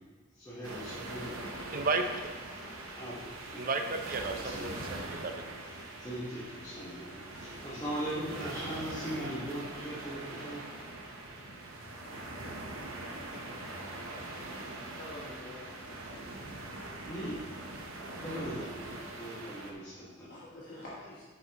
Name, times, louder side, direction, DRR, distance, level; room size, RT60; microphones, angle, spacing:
voice 1, 0.3-1.3 2.9-3.6 4.3-4.7 6.0-10.6 17.0-17.3 18.2-18.9 19.2-20.3, right 1 dB, 15° left, -10 dB, 1.2 m, -39 dB
sound 1, 0.6-19.7, right 2 dB, 85° right, 0.9 m, -42 dB
voice 2, 1.7-2.1 3.6-5.5, right 3 dB, 45° right, 6 dB, 0.6 m, -33 dB
voice 3, 14.9-16.3 17.3-17.4 18.1-18.5 20.3-21.2, left 1 dB, 50° left, -8 dB, 1.3 m, -48 dB
8.2 x 6.8 x 2.9 m, 1.4 s
head